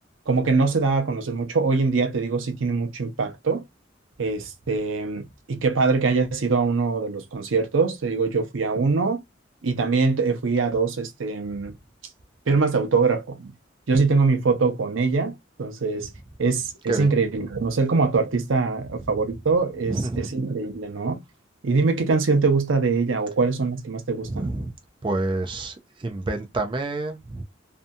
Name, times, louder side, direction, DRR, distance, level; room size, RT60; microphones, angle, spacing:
voice 1, 0.3-3.6 4.2-9.2 9.6-11.7 12.5-13.5 13.9-16.1 16.4-21.2 21.6-24.5, right 4 dB, 90° right, 0.7 m, -23 dB
voice 2, 19.9-20.3 24.2-24.7 25.0-27.4, right 2 dB, 25° right, 0.4 m, -28 dB
2.6 x 2.2 x 2.6 m
head